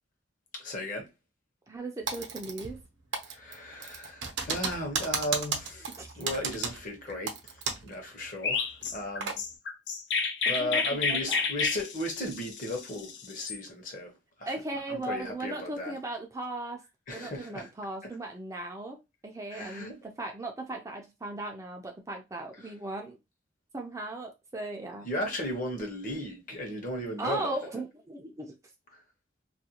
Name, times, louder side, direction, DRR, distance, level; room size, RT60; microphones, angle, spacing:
voice 1, 0.5-1.1 3.3-9.4 10.5-14.1 14.4-14.5 14.9-15.9 17.1-17.7 19.5-20.0 22.6-22.7 25.0-27.6 28.9-29.0, left 1 dB, 45° left, 0.8 m, -36 dB
voice 2, 1.7-2.8 6.0-6.3 10.4-11.4 14.5-16.8 17.1-19.0 19.2-23.2 23.7-25.1 27.2-28.5, right 2 dB, 15° right, 0.4 m, -37 dB
Typing, 2.1-2.9 3.1-8.0 8.2-8.3 8.8-9.4, right 5 dB, 75° right, 0.7 m, -34 dB
Chirp tweet, 8.4-13.6, left 5 dB, 70° left, 0.5 m, -30 dB
2.4 x 2.2 x 2.8 m
head